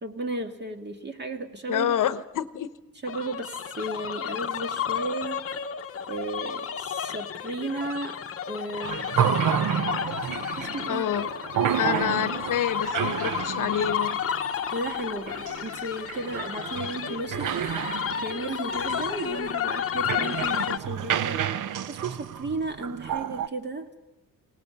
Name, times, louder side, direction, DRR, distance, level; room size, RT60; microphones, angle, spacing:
voice 1, 0.0-1.9 3.0-5.4 6.1-8.2 8.5-9.0 10.6-11.1 14.7-17.7 18.2-21.4 21.9-23.9, right 2 dB, 30° right, 6 dB, 1.8 m, -34 dB
voice 2, 1.7-2.7 10.9-11.3 11.8-14.2, left 10 dB, 65° left, 13 dB, 0.9 m, -27 dB
sound 1, 3.0-20.8, left 8 dB, 40° left, 0.9 m, -32 dB
sound 2, 8.8-23.5, right 9 dB, 60° right, 0.8 m, -30 dB
23.5 x 18.5 x 6.9 m, 1.1 s
cardioid pair, 130°, 35 cm